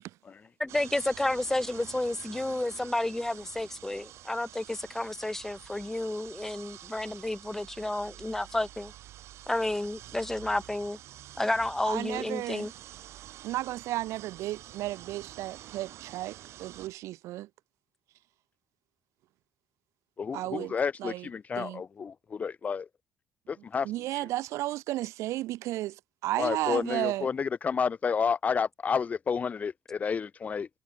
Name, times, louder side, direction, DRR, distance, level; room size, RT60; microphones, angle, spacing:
voice 1, 0.6-8.9 9.5-11.0 11.4-12.7, left 1 dB, 10° left, 4.9 m, -31 dB
sound 1, 0.7-16.9, right 13 dB, 70° right, 7.9 m, -48 dB
voice 2, 11.8-12.7 13.4-17.5 20.3-20.7 21.0-21.3 21.6-21.8 23.8-25.9 26.2-27.3, right 16 dB, 85° right, 3.0 m, -33 dB
voice 3, 20.2-22.9 23.5-23.9 24.2-24.3 26.4-30.7, left 6 dB, 30° left, 3.6 m, -30 dB
cardioid pair, 150°, 5 cm